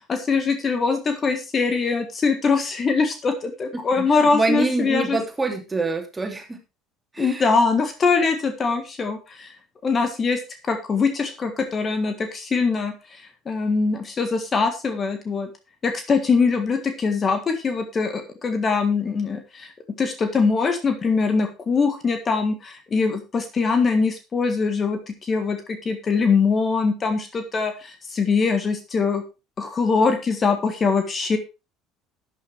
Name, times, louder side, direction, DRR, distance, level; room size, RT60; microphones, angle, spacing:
voice 1, 0.1-5.2 7.2-9.6 9.8-15.5 15.8-19.7 20.0-29.2 29.6-31.4, left 4 dB, 30° left, 7 dB, 1.7 m, -22 dB
voice 2, 4.0-6.6 7.1-7.5, right 3 dB, 15° right, 4 dB, 2.9 m, -25 dB
12.5 x 9.0 x 3.4 m, 0.28 s
figure-of-eight pair, 60°, 0 cm